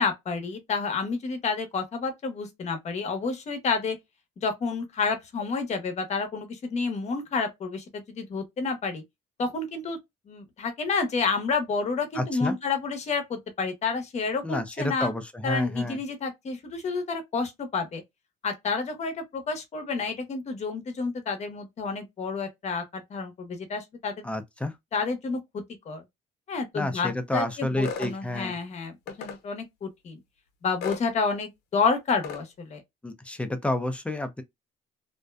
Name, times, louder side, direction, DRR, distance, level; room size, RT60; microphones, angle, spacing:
voice 1, 0.0-4.0 4.4-9.0 9.4-10.0 10.3-15.1 15.4-18.0 18.4-24.2 24.9-26.0 26.5-30.2 30.6-32.8, left 4 dB, 40° left, 0.9 m, -30 dB
voice 2, 12.1-12.6 14.4-16.0 24.2-24.7 26.7-28.5 33.0-34.4, left 1 dB, 5° left, 0.5 m, -30 dB
sound 1, 27.8-28.1 29.1-29.4 30.8-31.0 32.2-32.4, left 6 dB, 80° left, 0.7 m, -35 dB
2.6 x 2.1 x 2.3 m
cardioid pair, 110°, 17 cm